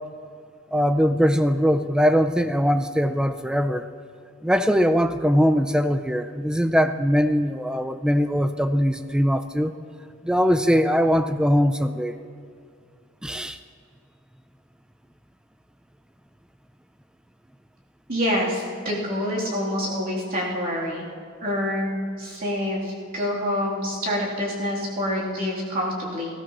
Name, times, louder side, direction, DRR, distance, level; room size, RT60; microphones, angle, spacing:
voice 1, 0.7-3.9 4.4-9.7 10.2-12.2 13.2-13.6, equal, 5° right, 10 dB, 0.3 m, -21 dB
voice 2, 18.1-21.0 21.4-26.3, equal, 45° right, -5 dB, 3.0 m, -27 dB
19.5 x 14.0 x 3.0 m, 2.3 s
head